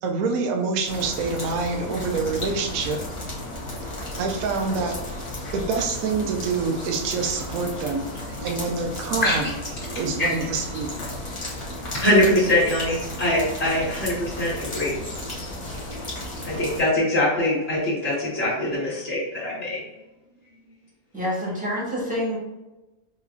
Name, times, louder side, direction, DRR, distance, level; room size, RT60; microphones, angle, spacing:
voice 1, 0.0-3.0 4.2-4.9 5.5-8.0 8.4-9.5 10.0-10.9, right 4 dB, 75° right, 2 dB, 1.0 m, -26 dB
sound 1, 0.8-16.8, left 1 dB, 25° left, 0.9 m, -34 dB
voice 2, 11.9-14.9 16.4-19.8, left 1 dB, 45° left, -8 dB, 1.9 m, -22 dB
voice 3, 21.1-22.4, equal, 5° right, -6 dB, 1.2 m, -27 dB
5.3 x 3.0 x 2.6 m, 1.0 s
omnidirectional pair, 1.5 m